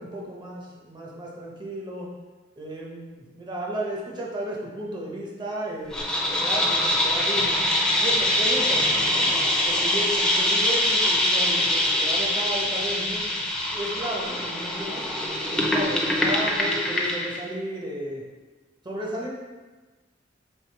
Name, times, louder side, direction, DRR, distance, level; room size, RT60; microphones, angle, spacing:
voice 1, 0.0-2.1 2.6-7.6 8.0-9.3 9.7-13.4 13.7-15.1 15.5-18.2 18.8-19.3, right 1 dB, 25° right, -3 dB, 0.8 m, -33 dB
sound 1, 5.9-17.4, left 1 dB, 5° left, 0.5 m, -24 dB
3.5 x 3.4 x 4.4 m, 1.3 s
head